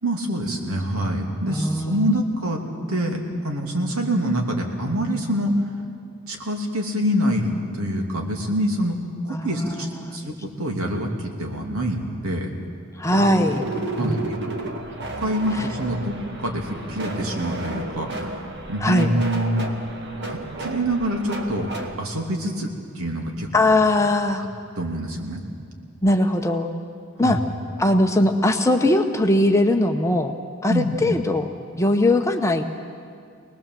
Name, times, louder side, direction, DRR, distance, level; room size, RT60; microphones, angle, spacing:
voice 1, 0.0-2.6 2.9-5.5 6.3-9.0 9.2-12.5 14.0-14.4 15.2-19.7 20.2-21.7 22.0-22.7 22.9-23.5 24.4-24.5 24.8-25.4 27.2-27.4 30.7-30.9, equal, 85° right, 2 dB, 2.9 m, -26 dB
voice 2, 1.5-2.2 9.3-10.3 12.9-13.7 14.0-14.2 15.5-15.7 18.8-19.1 23.5-24.4 26.0-26.7 27.2-27.4 27.8-30.3 30.6-31.5 31.8-32.9, left 1 dB, 15° left, 4 dB, 0.8 m, -20 dB
sound 1, 13.1-22.0, right 2 dB, 55° right, 2.0 m, -32 dB
24.5 x 19.5 x 7.6 m, 2.2 s
head